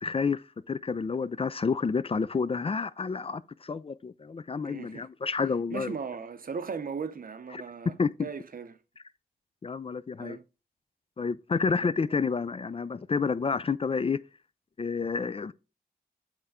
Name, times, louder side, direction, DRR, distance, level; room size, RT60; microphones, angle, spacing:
voice 1, 0.0-6.0 7.5-7.6 8.0-8.3 9.6-10.4 11.2-14.2 14.8-15.5, left 5 dB, 35° left, 0.4 m, -29 dB
voice 2, 4.6-5.1 5.7-8.8 10.2-10.4, right 6 dB, 55° right, 0.7 m, -37 dB
7.9 x 4.3 x 3.6 m
cardioid pair, 55°, 17 cm